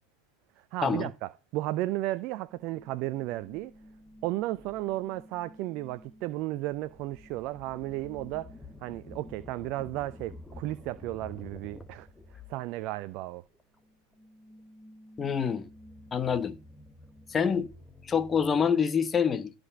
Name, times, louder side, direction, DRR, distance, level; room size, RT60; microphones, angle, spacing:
voice 1, 0.7-3.7 4.2-8.5 8.8-12.1 12.5-13.4, right 16 dB, 50° right, 0.5 m, -34 dB
sound 1, 2.5-13.2 13.5-18.7, left 1 dB, 5° left, 1.7 m, -50 dB
voice 2, 15.2-15.7 16.1-16.6 17.3-17.7 18.0-19.5, left 6 dB, 25° left, 1.4 m, -26 dB
14.5 x 5.3 x 7.1 m
hypercardioid pair, 85°, 0 cm